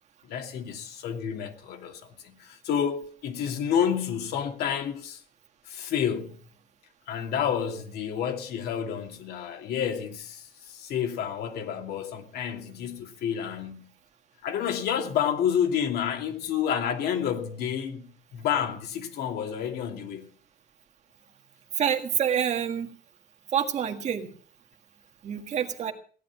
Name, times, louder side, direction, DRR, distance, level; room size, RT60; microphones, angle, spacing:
voice 1, 0.3-5.2 5.7-6.4 7.1-13.9 14.4-20.3, left 8 dB, 80° left, 2.7 m, -29 dB
voice 2, 21.8-22.9 23.5-24.3 25.2-25.9, right 8 dB, 45° right, 1.8 m, -27 dB
17.0 x 11.5 x 6.1 m
cardioid pair, 170°, 16 cm